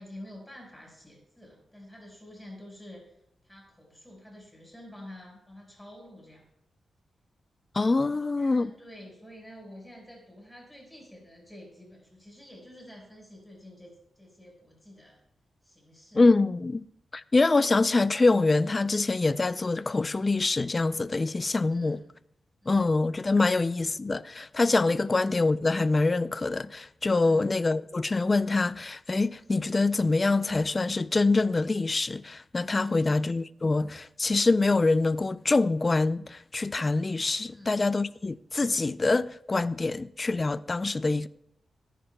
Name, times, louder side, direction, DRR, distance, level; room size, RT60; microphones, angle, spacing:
voice 1, 0.0-3.2 3.4-6.4 8.1-15.2 15.6-16.2 21.7-22.1 22.6-22.9 25.0-25.2 27.2-27.5 32.8-33.1 37.5-37.9, left 1 dB, 5° left, 4.6 m, -49 dB
voice 2, 7.7-8.7 16.2-16.9 17.1-22.0 22.7-41.3, left 3 dB, 25° left, 0.3 m, -25 dB
18.0 x 10.0 x 2.2 m
wide cardioid pair, 125°, 0 cm